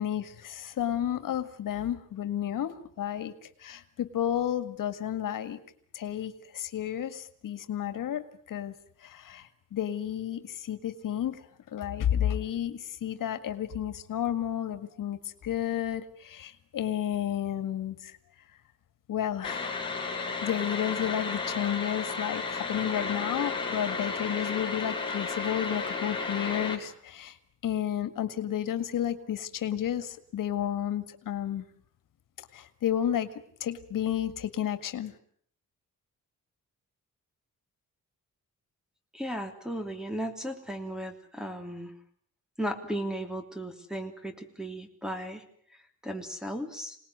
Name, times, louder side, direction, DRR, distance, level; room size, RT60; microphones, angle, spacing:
voice 1, 0.0-5.6 5.9-8.7 9.0-18.2 19.1-19.8 20.1-27.4 27.6-31.7 32.5-33.3 33.6-35.1, left 10 dB, 85° left, 11 dB, 1.9 m, -32 dB
sound 1, 19.4-26.7, left 4 dB, 15° left, 4.3 m, -33 dB
voice 2, 39.1-41.9 42.6-45.4 46.0-47.0, right 1 dB, ahead, 6 dB, 3.2 m, -35 dB
27.5 x 19.5 x 9.5 m, 0.64 s
wide cardioid pair, 155°, 32 cm